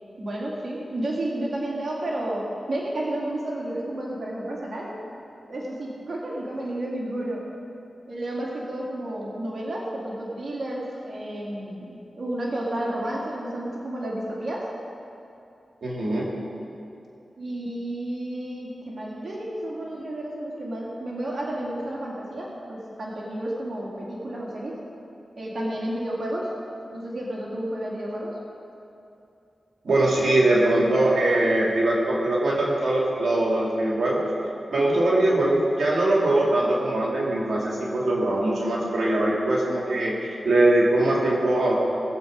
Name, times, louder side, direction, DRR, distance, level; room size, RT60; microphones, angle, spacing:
voice 1, 0.2-4.9 5.5-7.4 8.1-14.7 17.4-24.8 25.4-26.5 26.9-28.4 34.7-35.0, right 1 dB, 60° right, -4 dB, 2.3 m, -31 dB
voice 2, 15.8-16.2 29.8-34.3 34.7-40.2 40.4-41.8, right 1 dB, 75° right, -4 dB, 2.4 m, -22 dB
19.0 x 7.5 x 5.1 m, 2.7 s
cardioid pair, 60°, 0 cm